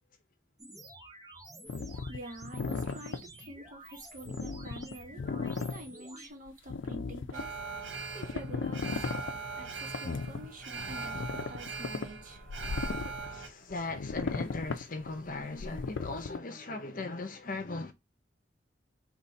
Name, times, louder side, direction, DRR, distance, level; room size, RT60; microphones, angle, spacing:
sound 1, 0.6-6.3, right 1 dB, 20° right, 1.0 m, -50 dB
sound 2, 1.7-3.2 4.3-5.8 6.5-7.4 8.2-9.4 9.9-10.5 10.7-10.8 11.1-13.3 13.7-16.4, left 4 dB, 80° left, 0.5 m, -36 dB
voice 1, 2.1-7.5 8.1-9.1 9.6-12.4, right 1 dB, 45° right, 1.1 m, -47 dB
Alarm, 7.3-13.5, right 4 dB, 75° right, 1.0 m, -40 dB
voice 2, 13.0-17.9, left 3 dB, 45° left, 0.8 m, -38 dB
4.0 x 2.9 x 4.1 m
head